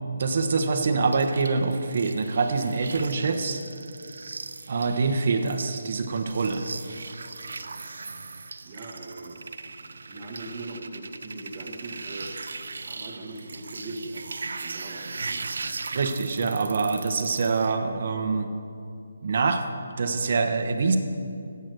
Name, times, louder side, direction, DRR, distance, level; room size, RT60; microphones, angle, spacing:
voice 1, 0.2-3.6 4.7-6.6 15.9-18.5 19.2-19.6 20.0-21.0, right 4 dB, 45° right, 6 dB, 1.2 m, -25 dB
sound 1, 1.1-17.7, right 4 dB, 70° right, 0.7 m, -39 dB
voice 2, 8.6-12.3 12.8-14.3 14.6-15.5, right 2 dB, 25° right, 0 dB, 1.6 m, -40 dB
13.0 x 8.3 x 7.9 m, 2.6 s
hypercardioid pair, 170°, 0 cm